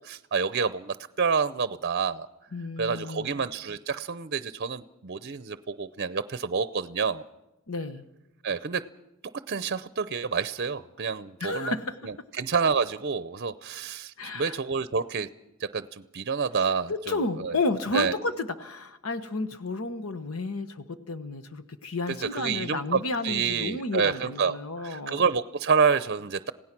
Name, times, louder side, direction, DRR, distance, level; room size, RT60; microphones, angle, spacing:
voice 1, 0.0-2.3 2.8-7.2 8.4-8.8 9.5-11.7 12.0-15.3 15.6-16.9 17.4-17.5 17.9-18.1 22.1-26.5, right 5 dB, 50° right, 14 dB, 0.6 m, -28 dB
voice 2, 2.5-3.3 7.7-8.0 11.4-12.0 14.2-14.6 16.9-25.2, left 3 dB, 75° left, 11 dB, 1.1 m, -32 dB
27.0 x 17.0 x 6.0 m, 0.94 s
head